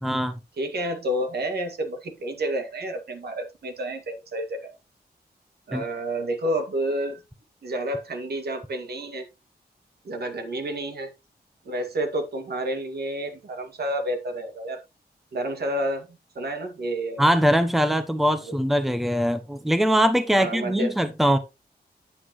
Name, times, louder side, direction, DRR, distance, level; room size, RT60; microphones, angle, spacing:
voice 1, 0.0-0.4 5.7-5.8 17.2-21.4, equal, ahead, 0.8 m, -22 dB
voice 2, 0.6-4.7 5.7-7.2 7.6-9.3 10.0-11.1 11.6-14.8 15.3-17.2 18.4-18.6 20.3-20.9, right 1 dB, 70° right, 2.1 m, -30 dB
9.5 x 8.2 x 3.1 m
wide cardioid pair, 145°, 17 cm